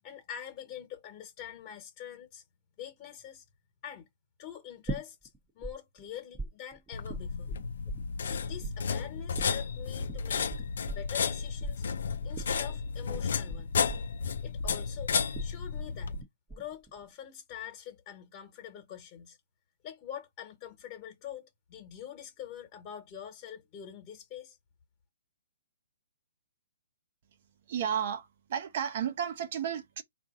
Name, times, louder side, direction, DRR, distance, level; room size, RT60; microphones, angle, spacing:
voice 1, 0.0-2.4 2.8-3.4 3.8-4.1 4.4-7.6 8.2-10.5 10.9-11.8 12.2-13.9 14.4-16.2 16.5-19.4 19.8-24.6, left 10 dB, 30° left, 1.4 m, -45 dB
sound 1, 4.9-5.7 6.0-8.4 8.6-16.2 16.5-17.0, right 2 dB, 10° right, 0.9 m, -40 dB
sound 2, 6.9-16.2, left 6 dB, 70° left, 0.5 m, -33 dB
voice 2, 27.7-30.0, right 8 dB, 50° right, 1.0 m, -33 dB
4.3 x 2.7 x 3.8 m
hypercardioid pair, 145°, 0 cm